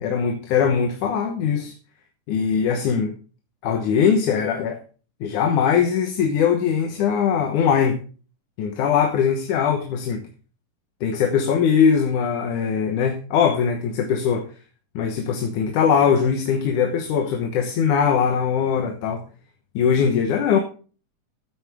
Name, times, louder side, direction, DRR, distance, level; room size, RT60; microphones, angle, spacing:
voice 1, 0.0-1.7 2.3-3.1 3.6-4.8 5.2-8.0 8.6-10.2 11.0-14.5 15.0-19.2 19.8-20.6, left 7 dB, 75° left, 5 dB, 2.6 m, -21 dB
15.0 x 8.5 x 3.5 m, 0.38 s
omnidirectional pair, 3.7 m